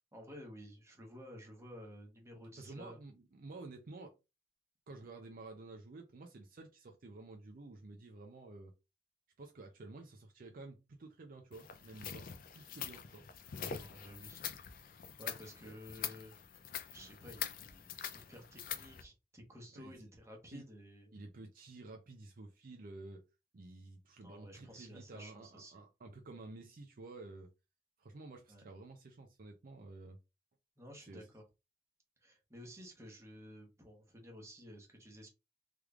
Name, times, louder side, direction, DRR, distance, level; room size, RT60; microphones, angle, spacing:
voice 1, 0.0-3.0 13.7-14.4 15.2-16.3 16.9-21.2 24.2-25.8 28.5-28.6 30.8-31.4 32.2-35.3, equal, 15° right, 1.0 m, -53 dB
voice 2, 2.6-4.1 4.9-8.7 9.4-12.3 12.5-13.5 15.6-15.8 19.7-20.1 20.5-20.7 21.1-23.2 23.5-27.5 28.0-30.2 31.0-31.3, right 2 dB, 50° right, 0.5 m, -51 dB
sound 1, 11.5-19.0, left 8 dB, 50° left, 0.4 m, -44 dB
3.4 x 3.1 x 2.3 m
head